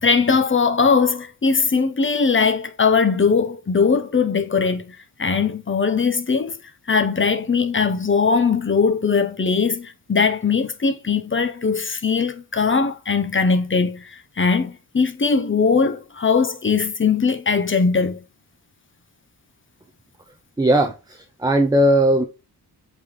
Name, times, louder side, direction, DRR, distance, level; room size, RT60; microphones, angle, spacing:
voice 1, 0.0-6.5 6.9-18.2, left 5 dB, 30° left, 0.9 m, -20 dB
voice 2, 20.6-22.2, right 1 dB, 10° right, 0.6 m, -18 dB
8.4 x 3.9 x 3.2 m
wide cardioid pair, 135°, 42 cm